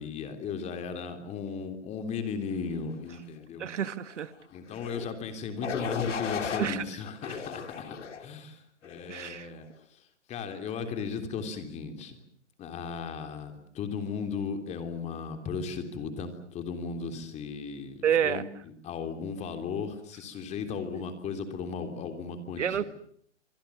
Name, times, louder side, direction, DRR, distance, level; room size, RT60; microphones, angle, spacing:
voice 1, 0.0-3.7 4.5-7.9 8.2-10.0 10.3-12.2 12.6-18.4 18.8-22.8, left 5 dB, 20° left, 7 dB, 3.3 m, -36 dB
voice 2, 3.6-4.3 6.6-6.8 9.1-9.5 18.0-18.4 20.9-21.0 22.6-22.8, right 9 dB, 75° right, 14 dB, 1.7 m, -28 dB
sound 1, 4.7-5.1 5.6-6.7 7.2-8.3 8.8-9.2, left 6 dB, 75° left, 3.6 m, -35 dB
26.5 x 25.0 x 7.2 m, 0.65 s
hypercardioid pair, 145°, 36 cm